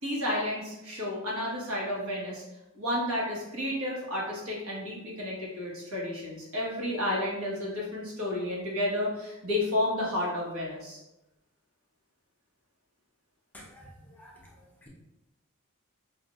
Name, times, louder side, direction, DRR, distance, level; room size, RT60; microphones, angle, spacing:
voice 1, 0.0-2.4 2.7-11.0, left 1 dB, 70° right, -4 dB, 1.4 m, -31 dB
voice 2, 13.5-13.9 14.2-14.3, equal, 10° left, -4 dB, 0.7 m, -49 dB
5.8 x 2.7 x 2.5 m, 0.96 s
head